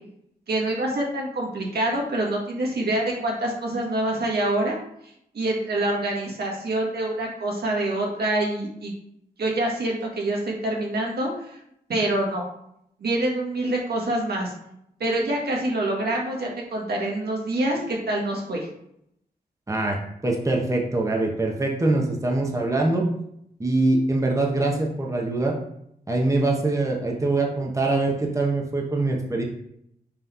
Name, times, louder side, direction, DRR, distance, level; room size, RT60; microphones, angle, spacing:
voice 1, 0.5-4.8 5.3-8.9 9.4-11.6 11.9-12.5 13.0-14.5 15.0-18.7, right 1 dB, 85° right, -1 dB, 1.6 m, -26 dB
voice 2, 19.7-23.1 23.6-25.6 26.1-29.4, right 2 dB, 20° right, 0 dB, 1.1 m, -23 dB
5.9 x 3.4 x 5.4 m, 0.75 s
wide cardioid pair, 100°, 16 cm